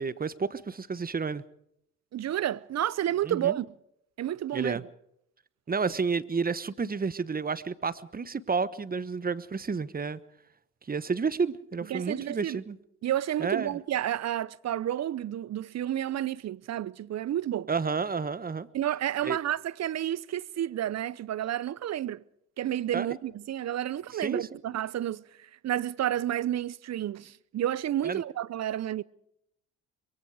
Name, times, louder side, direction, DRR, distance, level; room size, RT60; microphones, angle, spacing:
voice 1, 0.0-1.4 3.2-3.6 4.5-4.8 5.7-10.2 10.9-12.8 13.4-13.7 17.7-18.7 19.2-19.4 22.9-23.2 24.1-24.5 28.0-28.2, right 5 dB, 25° right, 1.2 m, -31 dB
voice 2, 2.1-3.7 4.2-4.8 11.9-12.6 13.0-17.7 18.7-22.2 22.6-29.0, right 11 dB, 50° right, 0.8 m, -30 dB
23.5 x 23.0 x 4.9 m
hypercardioid pair, 60°, 35 cm